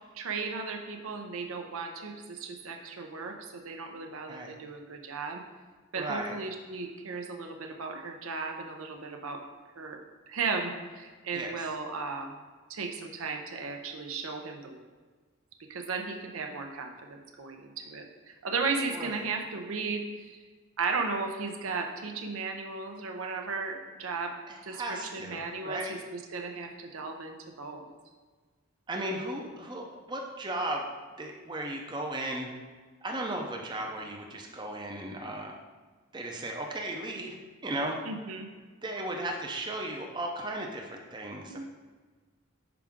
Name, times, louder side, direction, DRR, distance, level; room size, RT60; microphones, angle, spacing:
voice 1, 0.1-5.4 5.9-9.4 9.8-10.0 10.3-12.4 12.7-14.8 15.7-20.4 20.8-24.3 24.6-27.8 38.0-38.5 41.5-41.6, right 4 dB, 80° right, 4 dB, 0.7 m, -35 dB
voice 2, 6.0-6.4 11.3-11.7 18.9-19.3 24.5-26.0 28.9-30.9 31.2-32.5 33.0-35.5 36.1-38.0 38.8-41.6, right 1 dB, 20° right, 1 dB, 0.6 m, -36 dB
5.9 x 5.0 x 3.6 m, 1.4 s
head